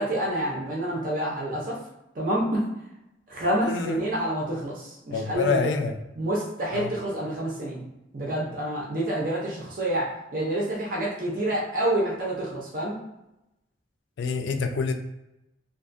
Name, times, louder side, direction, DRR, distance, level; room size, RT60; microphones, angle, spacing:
voice 1, 0.0-1.8 2.2-2.6 3.3-5.8 6.2-7.8 8.1-13.0, right 1 dB, 45° right, -4 dB, 0.6 m, -28 dB
voice 2, 3.6-4.0 5.1-5.9 6.7-6.9 14.2-14.9, left 4 dB, 80° left, 5 dB, 0.4 m, -27 dB
2.5 x 2.4 x 2.5 m, 0.90 s
head